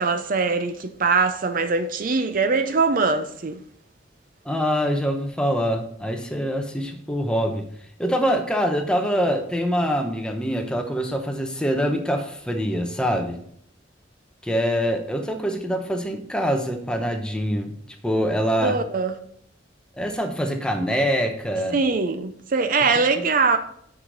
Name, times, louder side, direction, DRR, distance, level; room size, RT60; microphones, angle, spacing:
voice 1, 0.0-3.6 18.6-19.1 21.7-23.6, right 4 dB, 45° right, 0.5 m, -22 dB
voice 2, 4.4-7.7 8.0-13.4 14.4-17.7 18.0-18.8 20.0-21.8 23.2-23.3, equal, 5° left, 0.8 m, -24 dB
9.6 x 4.8 x 3.9 m
head